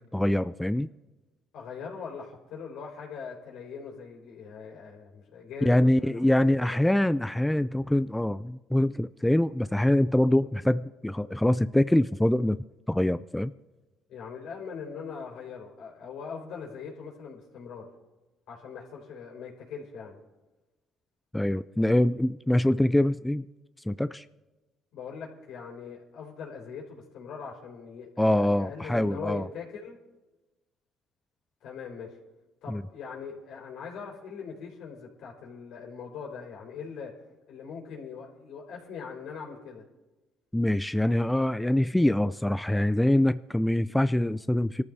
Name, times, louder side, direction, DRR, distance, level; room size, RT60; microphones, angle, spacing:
voice 1, 0.1-0.9 5.7-13.5 21.3-23.5 23.9-24.3 28.2-29.5 32.7-32.8 40.5-44.8, left 1 dB, 5° left, 13 dB, 0.3 m, -24 dB
voice 2, 1.5-6.8 14.1-17.9 18.5-20.2 24.9-30.0 31.6-32.2 32.6-37.1 37.5-39.9, left 6 dB, 75° left, -1 dB, 4.7 m, -41 dB
24.5 x 13.5 x 2.8 m, 1.1 s
supercardioid pair, 85°, 0 cm